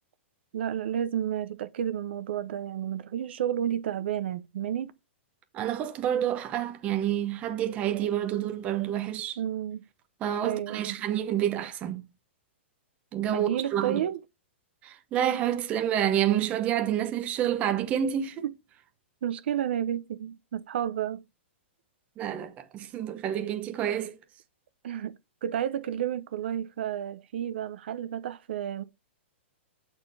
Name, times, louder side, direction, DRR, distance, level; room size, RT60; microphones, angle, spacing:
voice 1, 0.5-4.9 9.4-9.8 10.4-10.9 13.3-14.2 18.4-18.5 19.2-21.2 24.8-25.2 25.4-28.8, right 10 dB, 60° right, 0.8 m, -31 dB
voice 2, 5.5-9.4 10.2-12.0 13.1-14.0 14.8-18.5 22.2-24.2, right 10 dB, 20° right, 0.8 m, -28 dB
7.9 x 4.4 x 3.4 m
hypercardioid pair, 165°, 7 cm